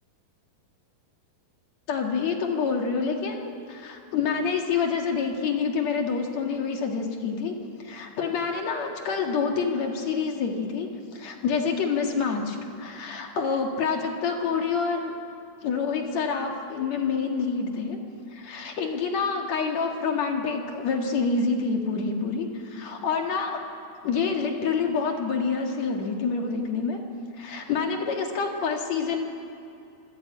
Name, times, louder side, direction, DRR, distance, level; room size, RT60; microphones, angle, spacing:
voice 1, 1.9-15.1 15.6-18.0 18.3-23.6 24.0-27.0 27.4-29.2, left 5 dB, 50° left, 2 dB, 2.6 m, -27 dB
25.5 x 14.0 x 8.8 m, 2.6 s
omnidirectional pair, 4.6 m